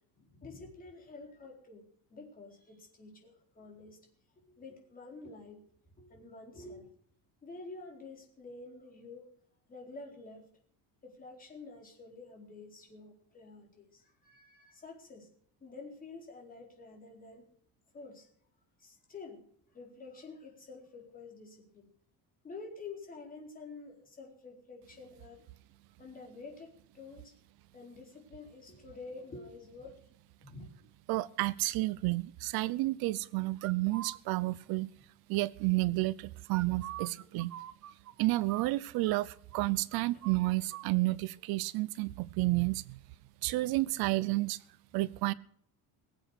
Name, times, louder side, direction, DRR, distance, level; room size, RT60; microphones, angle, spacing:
voice 1, 0.2-1.8 2.1-4.0 4.4-5.6 6.0-6.9 7.4-9.3 9.7-10.4 11.0-15.3 15.6-17.4 17.9-18.3 18.8-19.4 19.7-21.9 22.4-25.4 26.0-27.4 27.7-30.0 30.4-30.7, left 3 dB, 25° left, 1 dB, 4.3 m, -49 dB
voice 2, 31.1-34.9 35.3-37.5 38.2-43.0 43.4-44.6 44.9-45.3, right 20 dB, 75° right, 18 dB, 0.7 m, -31 dB
sound 1, 33.6-34.2 36.5-39.2 39.5-39.7 39.9-40.9, right 13 dB, 45° right, 0.8 m, -45 dB
22.0 x 8.1 x 6.5 m, 0.62 s
cardioid pair, 170°, 37 cm